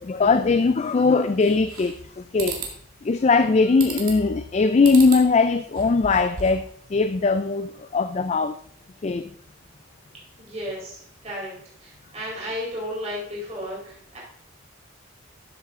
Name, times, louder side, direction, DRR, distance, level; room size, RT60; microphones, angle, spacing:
voice 1, 0.0-2.6 3.0-8.5 9.0-9.3, left 4 dB, 30° left, 11 dB, 0.3 m, -20 dB
sound 1, 1.4-2.1 2.4-2.7 3.8-4.3 4.8-5.3 5.6-6.7, right 5 dB, 90° right, 2.2 m, -34 dB
voice 2, 10.4-11.5 11.8-14.2, equal, 30° right, -5 dB, 4.2 m, -33 dB
12.0 x 7.4 x 3.7 m, 0.64 s
head